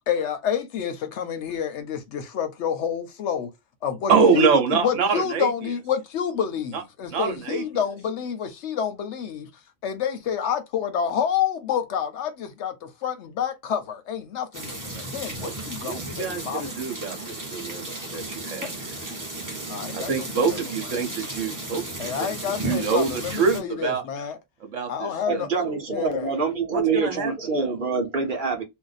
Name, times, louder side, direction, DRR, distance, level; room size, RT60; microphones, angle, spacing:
voice 1, 0.1-3.5 3.8-9.5 9.8-16.8 19.7-20.6 22.0-24.4 24.9-25.5 25.9-26.3, left 8 dB, 70° left, 0.8 m, -28 dB
voice 2, 4.1-5.7 6.7-6.8 7.1-7.6 15.4-15.5 15.8-18.9 19.9-22.3 22.6-24.0 24.6-25.8 26.7-27.7, right 5 dB, 70° right, 1.1 m, -25 dB
sound 1, 14.5-23.6, right 1 dB, 20° right, 0.6 m, -34 dB
voice 3, 25.3-28.6, right 5 dB, 45° right, 0.9 m, -26 dB
2.5 x 2.1 x 3.9 m
omnidirectional pair, 1.4 m